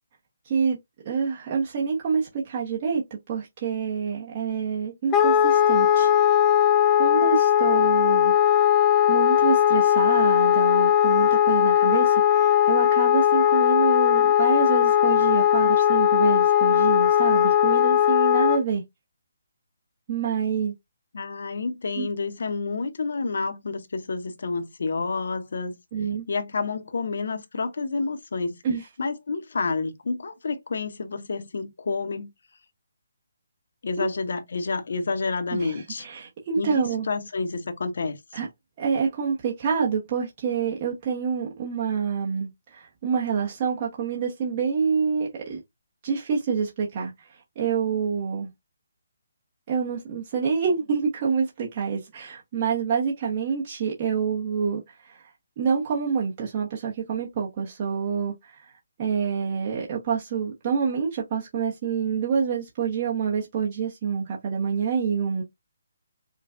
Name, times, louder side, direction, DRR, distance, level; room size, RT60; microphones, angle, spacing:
voice 1, 0.5-0.8 1.0-6.3 7.0-8.3 9.1-18.8 20.1-20.7 22.0-22.1 25.9-26.2 28.6-28.8 34.0-34.1 35.5-37.1 38.3-38.5 38.8-45.6 46.0-47.1 47.6-48.5 49.7-55.2 55.6-58.6 59.0-65.4, right 6 dB, 35° right, 1.0 m, -27 dB
Wind instrument woodwind instrument, 5.1-18.6, left 10 dB, 15° left, 0.3 m, -19 dB
voice 2, 21.1-25.8 26.3-28.6 29.0-32.3 33.8-36.1 36.6-38.2, left 4 dB, 70° left, 0.7 m, -29 dB
5.0 x 2.2 x 2.5 m
hypercardioid pair, 155°, 0 cm